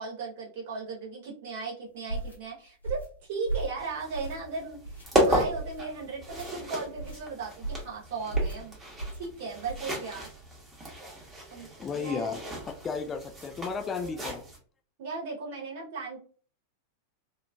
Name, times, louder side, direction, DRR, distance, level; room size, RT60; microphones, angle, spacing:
voice 1, 0.0-4.8 5.1-8.7 9.1-10.3 11.5-11.7 11.9-12.3 14.0-14.3 15.0-16.2, right 4 dB, 50° right, -3 dB, 1.1 m, -37 dB
sound 1, 2.1-2.4 2.8-3.1 3.5-3.8 4.1-4.5 4.8-5.1 5.5-5.8 6.3-6.5 7.0-7.2 7.6-7.9 8.3-8.6 9.0-9.2 9.6-9.9, right 2 dB, 80° left, 1.3 m, -34 dB
sound 2, 3.8-14.6, right 1 dB, 15° right, 1.1 m, -34 dB
voice 2, 11.8-14.4, left 5 dB, 20° left, 5 dB, 0.3 m, -34 dB
2.9 x 2.4 x 2.4 m, 0.42 s
figure-of-eight pair, 90°, 0 cm